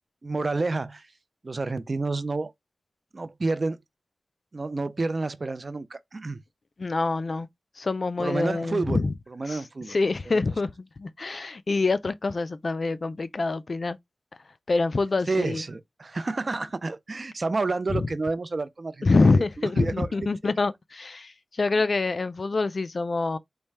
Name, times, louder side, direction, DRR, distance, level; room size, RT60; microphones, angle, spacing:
voice 1, 0.2-1.1 1.4-2.5 3.1-3.8 4.5-6.4 8.2-9.0 9.3-10.0 10.3-10.4 15.3-20.1, right 3 dB, 45° right, 0.4 m, -29 dB
voice 2, 6.8-7.5 7.8-9.1 9.5-9.6 9.9-14.0 14.7-15.6 17.9-18.1 19.0-23.4, left 3 dB, 50° left, 0.3 m, -25 dB
4.2 x 2.1 x 3.3 m
wide cardioid pair, 85°, 0 cm